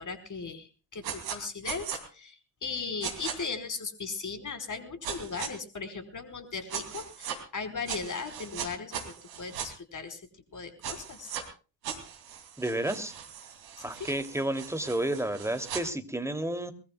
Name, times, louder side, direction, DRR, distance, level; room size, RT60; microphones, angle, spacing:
voice 1, 0.0-11.4 13.8-14.1, left 4 dB, 35° left, 8 dB, 4.8 m, -38 dB
sound 1, 1.0-1.4 1.6-2.0 3.0-3.3 5.0-5.5 6.7-7.4 7.9-9.7 10.8-11.4 11.8-15.8, right 8 dB, 85° right, 3.0 m, -38 dB
voice 2, 12.6-13.1 13.8-16.7, right 1 dB, 5° right, 8 dB, 2.9 m, -31 dB
23.0 x 21.5 x 2.3 m, 0.36 s
hypercardioid pair, 50°, 50 cm